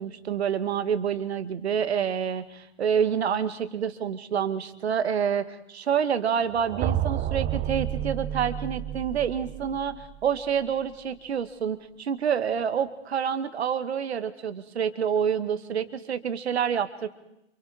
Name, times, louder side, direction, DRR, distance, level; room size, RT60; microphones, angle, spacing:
voice 1, 0.0-17.1, right 7 dB, 70° right, 11 dB, 2.2 m, -28 dB
sound 1, 6.5-10.5, right 11 dB, 25° right, 1.3 m, -30 dB
28.5 x 28.5 x 4.5 m, 0.84 s
figure-of-eight pair, 105°, 33 cm